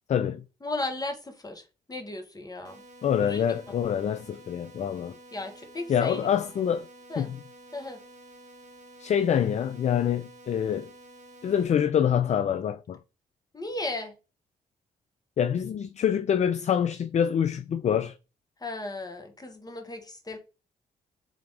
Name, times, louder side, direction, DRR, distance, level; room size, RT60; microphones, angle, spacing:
voice 1, 0.1-0.4 3.0-5.2 5.9-6.9 7.2-7.4 9.0-10.9 11.4-13.0 15.4-18.2, left 8 dB, 40° left, 0.4 m, -26 dB
voice 2, 0.6-2.8 3.2-3.6 5.3-6.3 7.1-7.3 7.7-8.0 13.5-14.1 18.6-20.4, left 2 dB, 20° left, 1.2 m, -36 dB
sound 1, 2.6-11.6, right 2 dB, 45° right, 1.0 m, -51 dB
3.7 x 3.4 x 3.3 m
hypercardioid pair, 45°, 17 cm